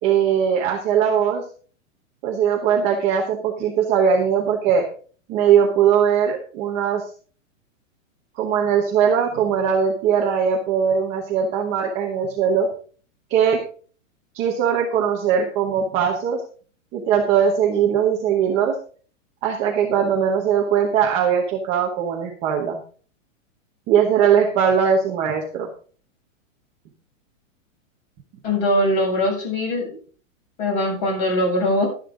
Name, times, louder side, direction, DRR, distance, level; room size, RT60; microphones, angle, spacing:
voice 1, 0.0-1.4 2.2-4.9 5.3-7.0 8.4-12.7 13.3-13.6 14.3-16.4 16.9-18.8 19.4-22.8 23.9-25.7, right 7 dB, 15° right, 0 dB, 1.0 m, -20 dB
voice 2, 28.4-30.0 30.6-31.9, left 1 dB, 25° left, 0 dB, 7.6 m, -21 dB
12.0 x 11.0 x 3.8 m, 0.42 s
supercardioid pair, 180°, 40 cm